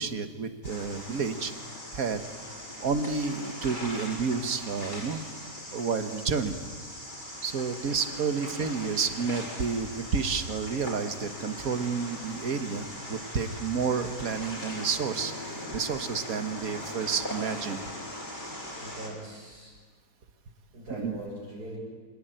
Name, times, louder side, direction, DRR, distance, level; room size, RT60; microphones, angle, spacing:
voice 1, 0.0-1.5 1.9-2.3 2.8-5.2 5.7-6.6 7.4-17.8 21.0-21.2, right 5 dB, 65° right, 9 dB, 1.8 m, -30 dB
sound 1, 0.6-19.1, left 1 dB, 30° left, 5.4 m, -40 dB
voice 2, 18.8-19.7 20.7-21.8, right 1 dB, 80° right, -8 dB, 6.8 m, -41 dB
26.0 x 18.5 x 9.1 m, 1.5 s
omnidirectional pair, 1.6 m